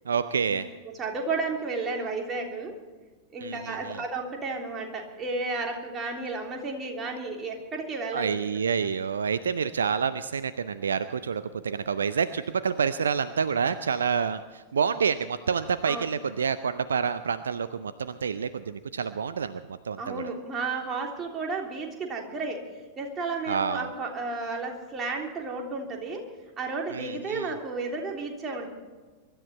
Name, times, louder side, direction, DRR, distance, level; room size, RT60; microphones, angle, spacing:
voice 1, 0.1-0.7 3.4-4.0 8.1-20.2 23.5-23.9 26.9-27.5, right 6 dB, 70° right, 14 dB, 0.5 m, -28 dB
voice 2, 0.8-2.7 3.3-8.4 15.8-16.1 20.0-22.6 23.0-26.2 26.6-28.7, right 3 dB, 25° right, 1 dB, 3.3 m, -32 dB
23.5 x 12.5 x 4.4 m, 1.3 s
figure-of-eight pair, 90°, 0 cm